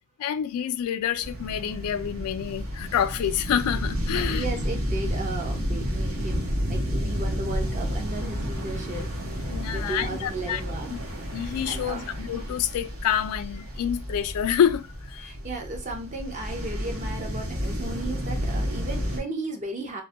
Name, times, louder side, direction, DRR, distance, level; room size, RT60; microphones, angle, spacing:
voice 1, 0.2-4.4 9.5-10.6 10.9-11.0 11.3-15.3, left 9 dB, 85° left, 0.3 m, -27 dB
sound 1, 1.2-19.2, equal, 70° right, 0.8 m, -31 dB
voice 2, 4.1-9.1 9.4-11.2 11.7-12.1 15.2-20.0, right 2 dB, 35° right, 0.5 m, -35 dB
2.2 x 2.1 x 2.7 m
head